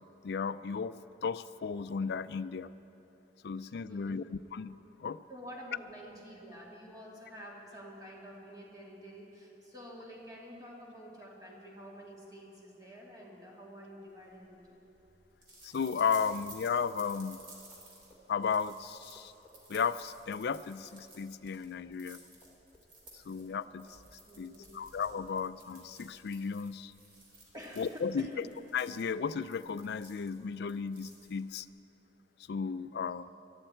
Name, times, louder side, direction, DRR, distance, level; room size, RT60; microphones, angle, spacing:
voice 1, 0.0-2.7 3.4-4.2 4.5-5.2 15.6-17.4 18.3-19.3 19.7-22.2 23.1-24.0 24.4-26.9 27.8-28.4 28.7-31.7 32.5-33.3, left 6 dB, 65° left, 15 dB, 0.4 m, -34 dB
voice 2, 3.6-4.2 5.3-14.8 24.3-25.0 27.5-28.5, equal, 20° right, -4 dB, 2.5 m, -49 dB
sound 1, 14.2-31.7, right 2 dB, 55° right, 3.7 m, -56 dB
sound 2, 15.6-22.1 22.4-23.5 23.8-24.0, equal, 10° left, 2.1 m, -62 dB
19.5 x 13.5 x 4.4 m, 3.0 s
head